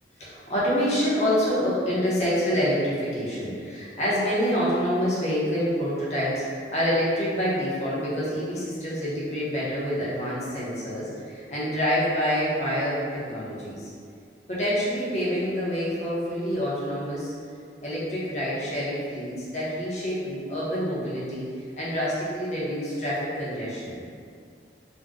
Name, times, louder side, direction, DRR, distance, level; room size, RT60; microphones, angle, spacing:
voice 1, 0.2-13.9 14.5-17.3 17.8-21.4 21.8-24.0, equal, 40° left, -8 dB, 0.8 m, -27 dB
2.6 x 2.1 x 3.5 m, 2.3 s
head